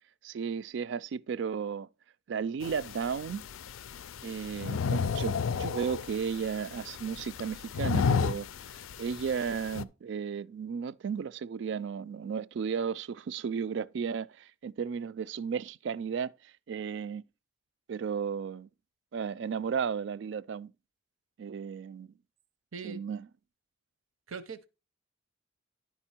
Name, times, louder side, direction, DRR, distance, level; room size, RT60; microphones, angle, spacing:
voice 1, 0.2-1.9 2.3-3.4 4.2-8.5 8.7-17.2 17.9-18.7 19.1-20.7 21.4-22.1 22.8-23.3, right 6 dB, 60° right, 0.3 m, -34 dB
sound 1, 2.6-9.8, left 5 dB, 80° left, 0.4 m, -33 dB
voice 2, 22.7-23.0 24.3-24.7, right 5 dB, 90° right, 0.8 m, -41 dB
10.5 x 4.5 x 4.4 m
head